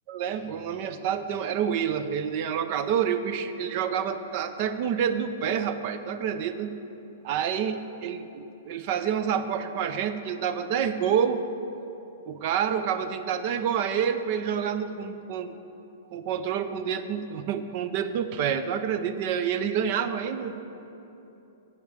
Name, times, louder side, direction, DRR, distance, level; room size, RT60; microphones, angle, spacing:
voice 1, 0.1-6.8 7.2-11.5 12.3-15.5 16.1-20.6, right 8 dB, 50° right, 11 dB, 0.5 m, -28 dB
8.1 x 7.2 x 6.6 m, 3.0 s
hypercardioid pair, 115°, 0 cm